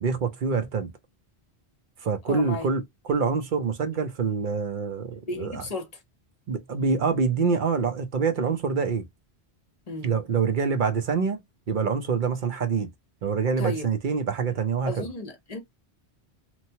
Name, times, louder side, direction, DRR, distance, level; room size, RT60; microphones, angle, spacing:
voice 1, 0.0-0.9 2.0-5.7 6.5-9.0 10.0-12.9 13.2-15.1, right 5 dB, 50° right, 0.7 m, -26 dB
voice 2, 2.3-2.7 5.3-5.9 9.9-10.2 13.6-13.9 14.9-15.6, left 2 dB, 40° left, 0.9 m, -33 dB
3.0 x 2.1 x 2.7 m
omnidirectional pair, 1.1 m